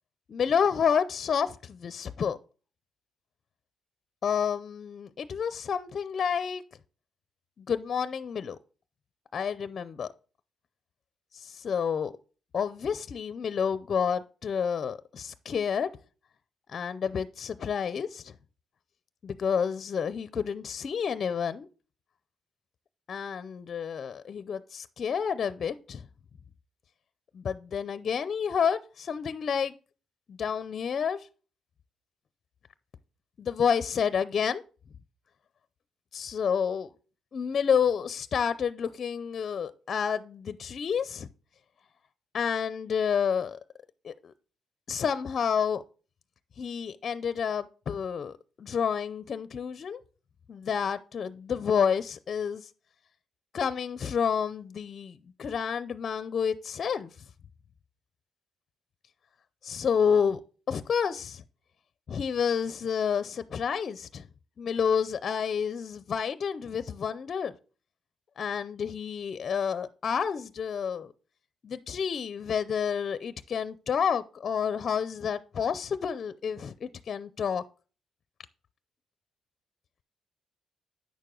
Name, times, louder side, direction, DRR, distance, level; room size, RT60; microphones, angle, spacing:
voice 1, 0.3-2.4 4.2-6.6 7.7-8.6 9.3-10.1 11.3-12.1 12.5-15.9 16.7-18.3 19.2-21.7 23.1-26.0 27.3-29.7 30.3-31.3 33.4-34.6 36.1-36.9 37.3-41.3 42.3-43.6 44.0-44.3 44.9-45.8 46.6-50.0 50.5-52.7 53.5-57.1 59.6-60.4 60.7-61.4 62.1-64.3 64.6-67.5 68.4-71.1 71.6-77.6, left 7 dB, 50° left, 0.5 m, -29 dB
9.2 x 6.6 x 3.8 m
cardioid pair, 90°, 0 cm